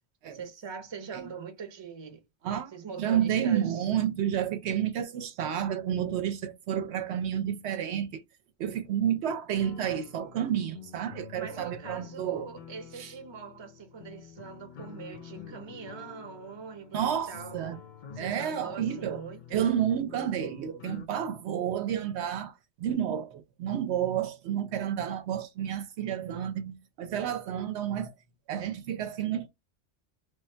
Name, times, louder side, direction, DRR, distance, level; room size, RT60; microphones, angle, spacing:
voice 1, 0.3-2.2 2.7-3.8 11.3-17.6 18.1-19.7, right 6 dB, 30° right, 0.6 m, -42 dB
voice 2, 3.0-8.2 8.6-12.5 13.0-13.1 16.9-17.8 18.2-19.2 19.5-28.1 28.5-29.5, right 9 dB, 75° right, 0.8 m, -30 dB
sound 1, 9.5-21.1, left 7 dB, 50° left, 0.6 m, -48 dB
3.1 x 2.3 x 4.3 m
omnidirectional pair, 1.1 m